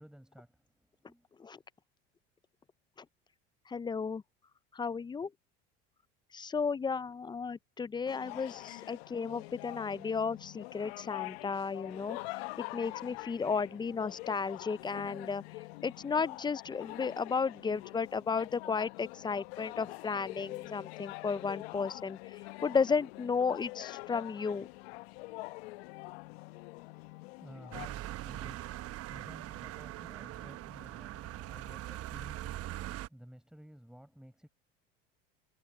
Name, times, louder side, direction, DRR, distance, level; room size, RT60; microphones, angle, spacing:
voice 1, 0.0-1.3 27.0-34.5, equal, ahead, 5.7 m, -54 dB
voice 2, 3.7-4.2 4.7-5.3 6.3-12.4 12.7-15.4 15.8-24.7, left 5 dB, 15° left, 0.4 m, -34 dB
sound 1, 8.1-27.9, left 23 dB, 75° left, 1.0 m, -45 dB
sound 2, 27.7-33.1, right 14 dB, 50° right, 1.2 m, -42 dB
hypercardioid pair, 90°, 31 cm